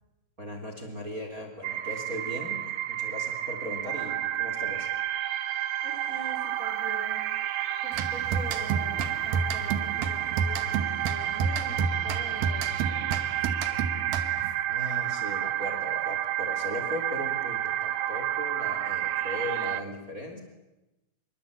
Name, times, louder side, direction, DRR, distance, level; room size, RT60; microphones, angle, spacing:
voice 1, 0.4-2.6 2.9-4.9 14.7-20.4, left 1 dB, 25° right, 4 dB, 3.5 m, -38 dB
sound 1, 1.6-19.8, right 13 dB, 90° right, 3.1 m, -30 dB
voice 2, 5.8-7.2 7.8-13.3, equal, 20° left, 4 dB, 3.3 m, -44 dB
sound 2, 7.9-14.6, right 5 dB, 70° right, 3.0 m, -31 dB
27.0 x 23.5 x 8.6 m, 0.99 s
omnidirectional pair, 4.5 m